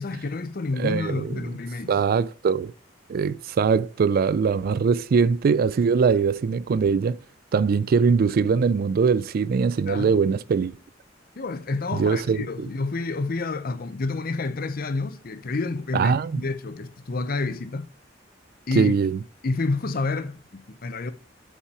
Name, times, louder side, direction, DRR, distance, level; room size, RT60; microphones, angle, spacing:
voice 1, 0.0-2.0 9.9-10.2 11.4-17.9 18.7-18.9 19.4-21.1, left 3 dB, 50° left, 0.7 m, -29 dB
voice 2, 0.8-1.4 1.9-2.7 3.1-7.2 7.5-10.7 11.9-12.7 15.9-16.4 18.8-19.2, right 5 dB, 50° right, 0.3 m, -22 dB
8.3 x 5.5 x 4.8 m
head